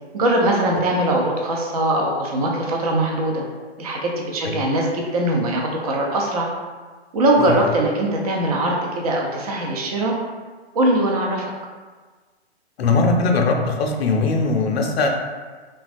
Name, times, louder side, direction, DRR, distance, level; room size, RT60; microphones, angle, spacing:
voice 1, 0.1-3.4 3.8-6.5 7.1-10.1 10.7-11.5, right 1 dB, 35° right, -1 dB, 0.4 m, -21 dB
voice 2, 12.8-15.1, left 3 dB, 70° left, 2 dB, 0.5 m, -20 dB
3.2 x 2.2 x 2.5 m, 1.4 s
hypercardioid pair, 150°, 33 cm